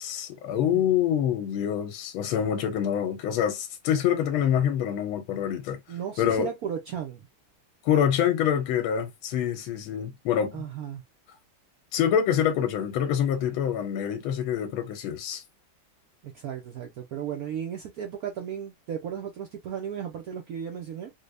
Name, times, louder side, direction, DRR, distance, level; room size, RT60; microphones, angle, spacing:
voice 1, 0.0-5.8 6.2-6.5 7.8-10.6 11.9-15.4, left 9 dB, 85° left, 1.4 m, -26 dB
voice 2, 5.9-7.3 10.5-11.0 16.2-21.1, right 9 dB, 85° right, 0.7 m, -35 dB
3.9 x 2.1 x 3.3 m
omnidirectional pair, 2.3 m